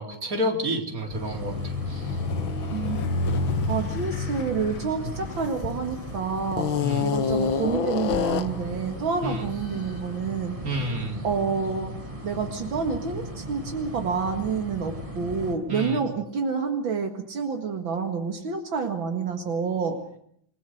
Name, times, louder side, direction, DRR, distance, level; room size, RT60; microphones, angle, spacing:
voice 1, 0.0-2.1 5.0-5.1 6.8-7.0 9.2-9.5 10.6-11.2 15.7-16.0, equal, 45° right, 2 dB, 4.4 m, -30 dB
sound 1, 1.1-5.9 6.5-8.7, left 5 dB, 85° left, 2.0 m, -28 dB
sound 2, 1.1-15.6, equal, 15° right, 5.0 m, -37 dB
voice 2, 2.7-3.0 3.7-6.7 7.0-10.6 11.2-11.9 12.2-20.0, right 5 dB, 75° right, 4 dB, 2.7 m, -28 dB
28.5 x 21.0 x 6.5 m, 0.67 s
omnidirectional pair, 2.1 m